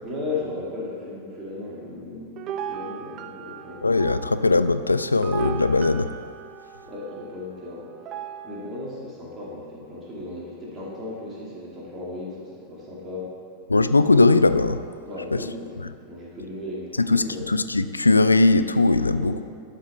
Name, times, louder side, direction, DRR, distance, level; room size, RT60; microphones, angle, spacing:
voice 1, 0.0-4.1 6.8-7.9 8.4-13.4 15.1-15.8 16.1-17.5 19.1-19.4, left 2 dB, 20° right, -5 dB, 2.5 m, -35 dB
sound 1, 2.4-8.8, right 9 dB, 35° right, 0.4 m, -37 dB
voice 2, 3.8-6.1 13.7-14.8 15.3-15.4 17.1-19.4, left 3 dB, 80° left, 12 dB, 0.3 m, -19 dB
11.5 x 5.7 x 4.4 m, 2.3 s
figure-of-eight pair, 90°, 0 cm